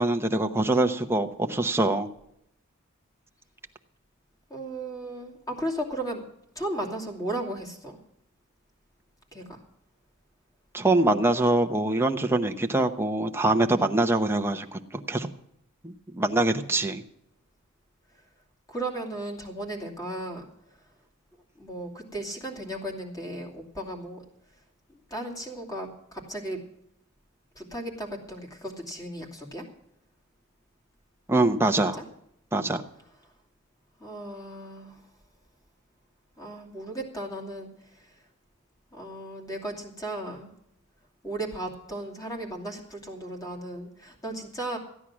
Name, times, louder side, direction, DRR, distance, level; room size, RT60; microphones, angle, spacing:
voice 1, 0.0-2.1 10.7-15.3 15.8-17.0 31.3-32.0 32.5-32.8, right 2 dB, 10° right, 4 dB, 0.8 m, -24 dB
voice 2, 4.5-6.2 6.6-8.0 9.3-9.6 11.0-11.2 18.7-20.5 21.6-24.2 25.1-26.6 27.5-29.7 31.8-32.0 34.0-34.9 36.4-37.7 38.9-40.5 41.2-44.8, right 1 dB, 15° left, 0 dB, 2.7 m, -35 dB
15.0 x 10.0 x 6.1 m, 0.77 s
head